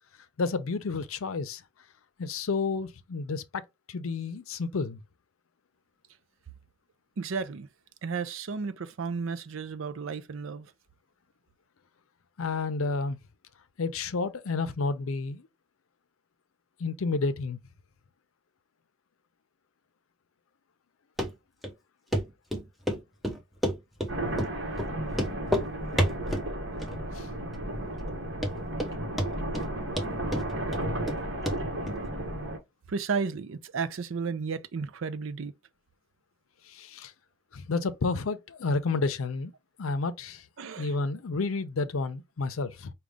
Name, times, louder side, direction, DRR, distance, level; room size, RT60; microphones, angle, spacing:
voice 1, 0.4-1.6 2.2-3.6 3.9-5.0 12.4-13.2 13.8-15.5 16.8-17.6 27.1-27.3 36.7-37.1 37.5-39.5 39.8-40.4 40.8-42.9, left 3 dB, 85° left, 0.6 m, -30 dB
voice 2, 7.2-7.7 8.0-10.7 32.9-35.5 40.6-40.9, right 5 dB, 75° right, 0.5 m, -33 dB
Run, 21.2-21.3 21.6-21.7 22.1-22.2 22.5-23.0 23.2-24.1 24.4-24.5 24.8-24.9 25.1-25.7 26.0-26.5 26.8-27.3 27.5-27.6 28.1-28.2 28.4-28.9 29.2-29.7 30.0-31.2 31.5-31.6 31.9-32.0, equal, ahead, 0.6 m, -29 dB
sound 1, 24.1-32.6, right 1 dB, 55° right, 1.2 m, -33 dB
5.0 x 2.3 x 3.5 m
head